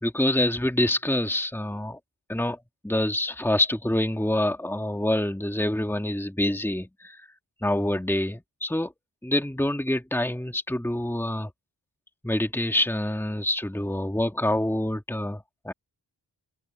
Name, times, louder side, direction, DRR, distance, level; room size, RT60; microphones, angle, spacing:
voice 1, 0.0-2.0 2.3-2.6 2.8-7.3 7.6-8.9 9.2-11.5 12.2-15.7, left 1 dB, 5° left, 2.1 m, -26 dB
cardioid pair, 50°, 44 cm